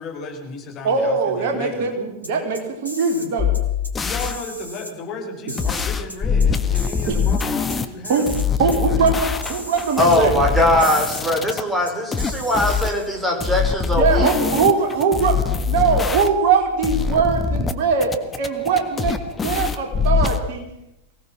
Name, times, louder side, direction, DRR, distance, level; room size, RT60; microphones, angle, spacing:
voice 1, 0.0-1.9 4.0-8.3 8.6-9.0 10.7-12.0, left 3 dB, 35° left, 1 dB, 5.3 m, -34 dB
voice 2, 0.8-3.5 7.1-7.2 8.1-8.3 8.6-10.3 14.0-15.4 15.7-20.6, right 5 dB, 50° right, 3 dB, 4.2 m, -21 dB
sound 1, 2.2-3.3 3.5-3.9 4.2-4.9 5.5-6.5 6.7-7.8 8.0-8.5 8.7-8.8 9.1-9.2 9.4-10.2 10.8-11.2 11.5-11.6 11.9-13.2, left 1 dB, 85° left, 3.5 m, -36 dB
sound 2, 3.4-4.4 5.6-7.9 8.3-11.6 12.1-12.9 13.4-16.5 16.8-17.7 18.0-20.4, left 6 dB, 15° left, 1.5 m, -23 dB
voice 3, 10.0-14.3, left 1 dB, 5° right, 1 dB, 5.6 m, -20 dB
23.5 x 18.0 x 6.2 m, 0.86 s
figure-of-eight pair, 90°, 0 cm